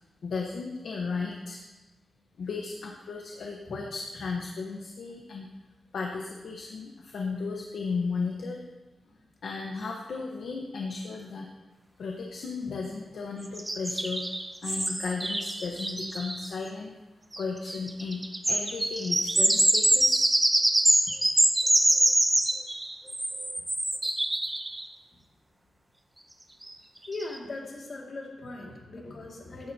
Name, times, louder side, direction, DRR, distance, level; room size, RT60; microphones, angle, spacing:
voice 1, 0.2-1.6 2.4-5.5 5.9-8.6 9.4-11.5 12.0-14.2 14.6-16.9 17.4-20.2, left 4 dB, 70° left, 0 dB, 1.0 m, -35 dB
sound 1, 13.6-16.5 17.3-17.4 17.7-24.9 26.7-26.8 27.1-27.4, right 1 dB, 10° right, 0.6 m, -25 dB
voice 2, 27.1-29.7, left 2 dB, 45° left, -1 dB, 2.1 m, -39 dB
14.5 x 10.5 x 2.8 m, 1.1 s
wide cardioid pair, 155°, 0 cm